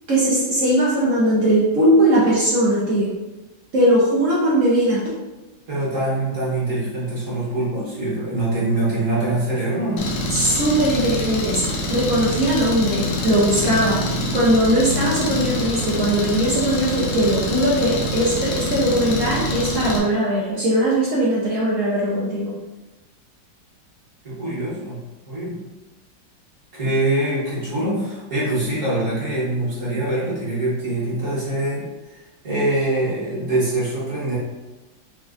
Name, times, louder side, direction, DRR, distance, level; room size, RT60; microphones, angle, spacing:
voice 1, 0.1-3.1 3.7-5.0 10.3-11.6 11.9-22.5, right 1 dB, 75° right, -5 dB, 0.7 m, -19 dB
voice 2, 5.7-10.1 24.2-25.0 25.3-25.6 26.7-31.8 32.4-34.4, right 2 dB, 45° right, -9 dB, 1.4 m, -24 dB
Engine, 10.0-20.0, left 1 dB, 90° left, 1.4 m, -25 dB
4.2 x 2.4 x 2.4 m, 1.1 s
omnidirectional pair, 2.1 m